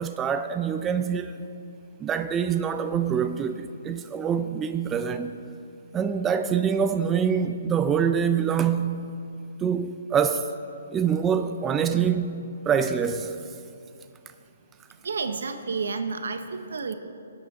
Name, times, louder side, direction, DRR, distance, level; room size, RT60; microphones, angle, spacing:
voice 1, 0.0-1.5 2.0-5.4 5.9-9.0 9.6-10.5 10.9-12.4 12.7-13.4, right 7 dB, 15° right, 0.4 m, -25 dB
voice 2, 15.0-16.9, right 4 dB, 80° right, 1.0 m, -30 dB
20.0 x 8.9 x 3.7 m
hypercardioid pair, 145°, 0 cm